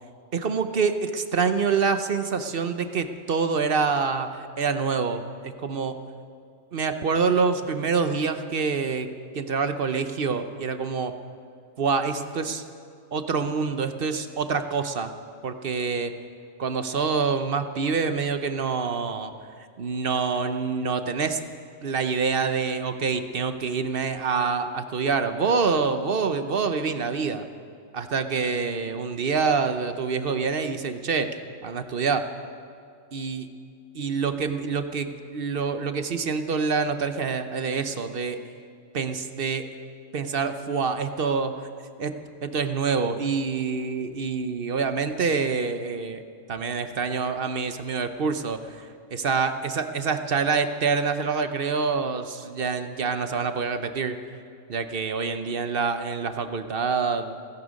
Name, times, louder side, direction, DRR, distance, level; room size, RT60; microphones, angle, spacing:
voice 1, 0.3-6.0 6.7-9.1 9.3-11.1 11.8-12.6 13.1-15.1 15.4-16.1 16.6-19.3 19.8-21.4 21.8-27.4 27.9-31.3 31.6-32.3 33.1-33.5 33.9-38.4 38.9-39.7 40.1-41.5 42.0-42.2 42.4-46.2 46.5-54.2 54.7-57.4, right 5 dB, 50° right, 9 dB, 0.9 m, -26 dB
16.5 x 16.0 x 5.2 m, 2.4 s
omnidirectional pair, 1.4 m